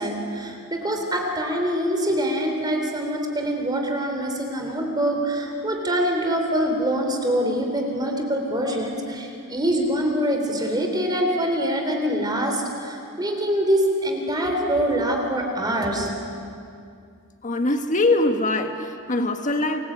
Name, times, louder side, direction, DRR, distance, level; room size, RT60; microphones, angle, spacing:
voice 1, 0.0-16.1, equal, 20° right, 2 dB, 3.7 m, -24 dB
voice 2, 17.4-19.8, left 2 dB, 35° left, 6 dB, 1.6 m, -22 dB
29.5 x 22.0 x 8.8 m, 2.3 s
head